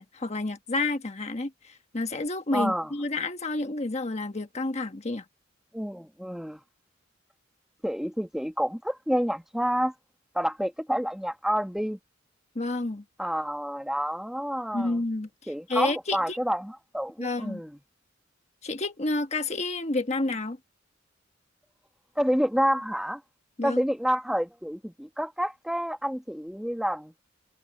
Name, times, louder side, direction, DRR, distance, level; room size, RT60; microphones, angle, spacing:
voice 1, 0.0-5.2 12.5-13.0 14.7-15.3 15.7-16.4 17.2-17.6 18.6-20.6 23.6-23.8, left 2 dB, 35° left, 1.3 m, -30 dB
voice 2, 2.5-2.9 5.7-6.6 7.8-9.9 10.3-12.0 13.2-15.0 15.5-17.8 22.1-23.2 23.6-27.1, equal, ahead, 1.7 m, -28 dB
head